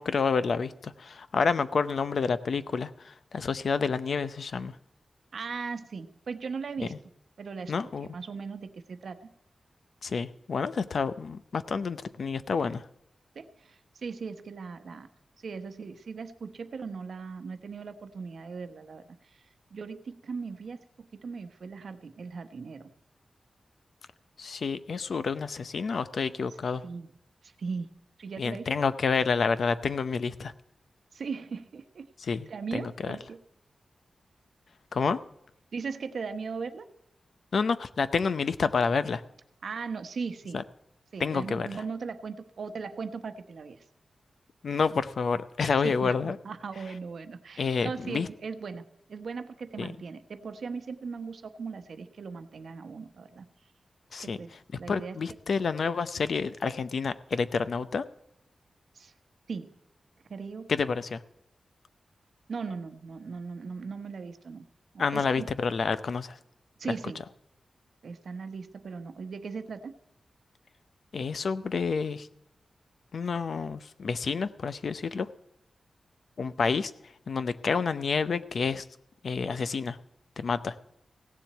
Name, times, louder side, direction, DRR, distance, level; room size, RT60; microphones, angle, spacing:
voice 1, 0.0-4.8 6.8-7.0 7.7-8.1 10.0-12.9 24.4-26.8 28.4-30.5 32.2-33.2 34.9-35.2 37.5-39.2 40.5-40.6 41.2-41.7 44.6-46.4 47.6-48.3 49.8-49.9 54.1-54.4 54.9-58.1 60.7-61.2 65.0-66.4 71.1-72.3 73.1-75.3 76.4-76.9 77.3-78.9 79.2-80.0 80.4-80.8, left 5 dB, 60° left, 13 dB, 0.6 m, -29 dB
voice 2, 5.3-7.0 7.4-7.7 8.1-9.3 13.3-15.1 15.4-19.4 19.7-22.9 26.8-27.1 27.4-27.9 28.2-28.7 31.1-33.4 35.7-36.9 39.6-40.6 41.1-43.8 45.8-48.8 49.1-53.5 54.2-54.5 54.8-55.2 58.9-59.1 59.5-59.8 60.3-60.7 62.5-64.7 64.9-65.5 66.8-67.2 68.0-69.9, right 5 dB, 65° right, 9 dB, 1.0 m, -38 dB
16.5 x 7.4 x 8.0 m, 0.80 s
wide cardioid pair, 180°, 0 cm